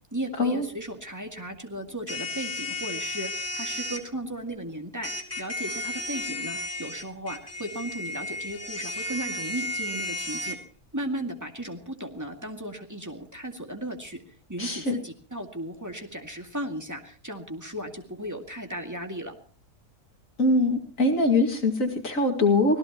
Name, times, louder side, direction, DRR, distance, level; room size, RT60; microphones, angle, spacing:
voice 1, 0.1-10.6 10.9-14.2 14.5-19.4, right 1 dB, 10° right, 3 dB, 2.1 m, -36 dB
sound 1, 2.1-4.0 5.0-10.6, left 1 dB, 10° left, 2.6 m, -33 dB
voice 2, 14.6-15.0 20.4-22.8, left 2 dB, 55° left, 4 dB, 2.6 m, -23 dB
25.5 x 17.5 x 3.0 m, 0.42 s
omnidirectional pair, 1.7 m